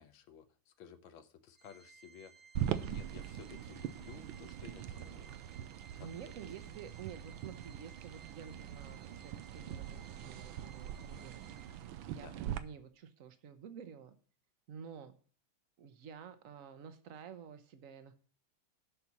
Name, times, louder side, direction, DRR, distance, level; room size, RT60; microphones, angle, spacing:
voice 1, 0.0-5.4 5.9-6.3 12.1-12.4, left 8 dB, 80° left, 9 dB, 1.6 m, -55 dB
Organ, 1.6-12.2, right 6 dB, 5° right, 1.3 m, -60 dB
sound 1, 2.6-12.6, right 11 dB, 90° right, 1.4 m, -42 dB
voice 2, 6.0-11.4 12.1-14.2 14.7-15.2 15.8-18.1, right 7 dB, 50° right, 9 dB, 1.1 m, -50 dB
6.9 x 6.1 x 7.1 m, 0.43 s
omnidirectional pair, 2.2 m